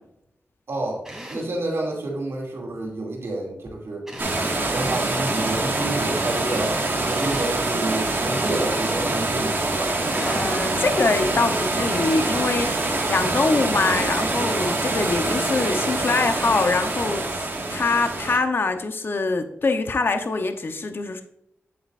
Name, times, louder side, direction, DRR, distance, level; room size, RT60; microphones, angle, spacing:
voice 1, 0.7-1.0 1.3-4.1 4.7-9.9, right 2 dB, 70° right, -1 dB, 2.5 m, -29 dB
Drill, 1.0-1.6 4.1-4.7 7.1-7.7 10.1-10.7, right 1 dB, 10° right, 2.7 m, -37 dB
sound 1, 4.2-18.4, right 2 dB, 50° right, 1.7 m, -25 dB
voice 2, 10.1-21.2, left 3 dB, 55° left, 7 dB, 0.8 m, -24 dB
8.6 x 7.9 x 2.5 m, 0.79 s
wide cardioid pair, 85°, 5 cm